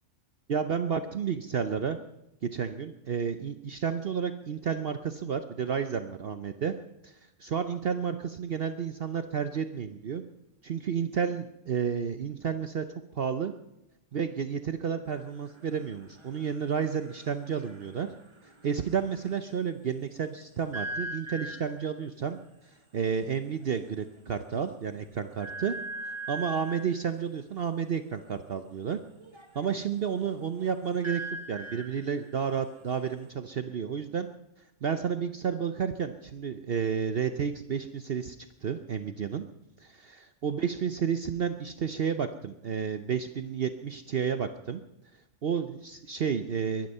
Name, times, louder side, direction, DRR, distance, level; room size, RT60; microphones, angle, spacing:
voice 1, 0.5-2.0 2.4-6.7 7.0-7.1 7.4-10.2 10.6-12.8 13.1-13.5 14.1-18.1 18.6-22.4 22.9-25.7 26.3-29.0 29.5-31.2 31.5-34.3 34.8-38.4 38.6-39.4 39.8-44.8 45.4-46.9, right 7 dB, 50° right, 10 dB, 0.9 m, -31 dB
sound 1, 15.1-19.5 20.7-21.9 23.1-23.2 23.5-23.7 24.1-24.2 25.4-27.0 29.1-33.3, right 2 dB, 20° right, 1.4 m, -42 dB
23.0 x 10.5 x 5.5 m, 0.88 s
omnidirectional pair, 1.4 m